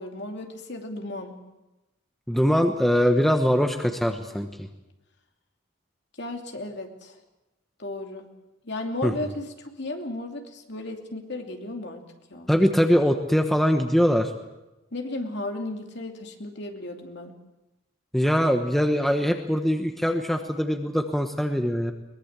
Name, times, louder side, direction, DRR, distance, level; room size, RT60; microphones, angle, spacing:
voice 1, 0.0-1.3 6.2-7.2 7.8-8.3 8.6-12.0 12.3-12.5 14.9-17.3, left 2 dB, 55° left, 3 dB, 2.8 m, -34 dB
voice 2, 2.3-4.7 9.0-9.1 12.5-14.3 18.1-21.9, equal, ahead, 5 dB, 1.1 m, -22 dB
22.5 x 20.5 x 7.4 m, 1.0 s
head